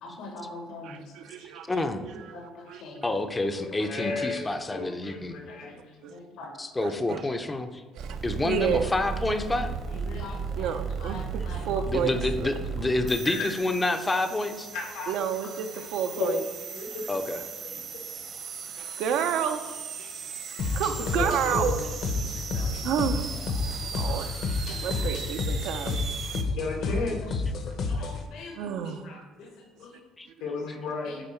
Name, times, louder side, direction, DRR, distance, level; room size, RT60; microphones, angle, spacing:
voice 1, 0.0-1.0 2.3-3.0 4.0-4.1 5.6-5.7 6.1-6.5 9.9-11.6 13.4-13.5 16.2-16.3 22.5-22.8 23.7-24.2 24.7-24.9 26.8-26.9 27.9-28.7 29.0-29.5 29.8-30.0 31.1-31.2, left 5 dB, 65° left, 1 dB, 1.2 m, -40 dB
voice 2, 0.8-2.4 2.7-3.2 6.0-6.2 6.8-7.2 7.9-8.2 8.4-8.9 10.6-12.5 15.1-16.4 18.8-19.6 20.0-20.1 20.5-21.7 22.8-23.3 23.9-26.1 27.7-28.0 28.4-29.5 30.3-30.5, right 8 dB, 70° right, 8 dB, 0.5 m, -31 dB
voice 3, 1.7-2.1 3.0-5.4 6.6-7.8 8.2-9.7 11.9-14.7 17.1-17.4 18.9-19.0 30.2-30.3, left 2 dB, 15° left, 7 dB, 0.5 m, -28 dB
voice 4, 3.6-6.0 8.2-8.5 14.7-15.1 16.7-17.0 17.6-18.0 21.1-21.7 23.9-24.3 26.6-27.2 30.4-31.2, left 3 dB, 85° left, -1 dB, 1.8 m, -34 dB
sound 1, 8.0-26.4, right 6 dB, 45° right, 0.9 m, -37 dB
sound 2, 20.6-28.3, left 3 dB, 50° left, 0.9 m, -30 dB
8.9 x 3.9 x 4.4 m, 1.3 s
cardioid pair, 145°, 0 cm